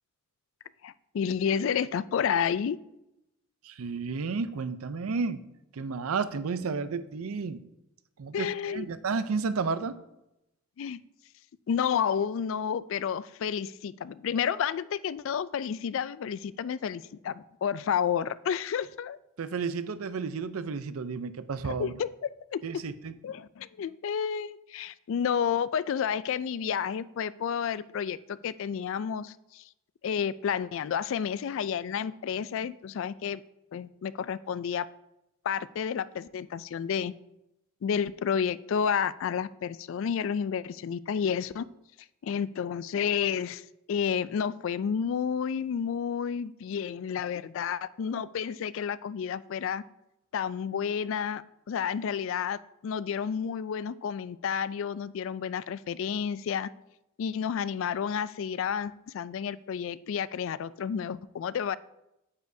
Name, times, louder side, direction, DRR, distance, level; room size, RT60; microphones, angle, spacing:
voice 1, 0.8-2.8 8.3-8.9 10.8-11.0 11.7-19.2 21.6-22.6 23.2-29.7 30.0-33.4 33.7-34.9 35.4-37.1 37.8-41.7 42.2-49.8 50.3-51.4 51.7-56.7 57.2-61.8, left 7 dB, 65° left, 17 dB, 0.3 m, -30 dB
voice 2, 3.6-5.4 5.7-7.6 8.2-10.0 19.4-21.9 22.6-23.1, right 4 dB, 80° right, 13 dB, 0.5 m, -32 dB
9.5 x 8.3 x 2.7 m, 0.89 s
head